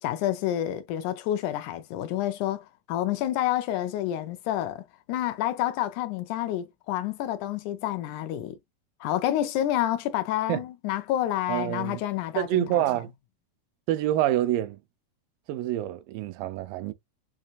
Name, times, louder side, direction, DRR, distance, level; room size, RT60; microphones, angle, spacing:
voice 1, 0.0-8.6 9.0-12.8, left 12 dB, 80° left, 1.8 m, -29 dB
voice 2, 11.5-12.0 12.4-13.1 13.9-14.8 15.5-16.9, right 13 dB, 85° right, 2.3 m, -27 dB
7.5 x 2.6 x 2.3 m
omnidirectional pair, 4.0 m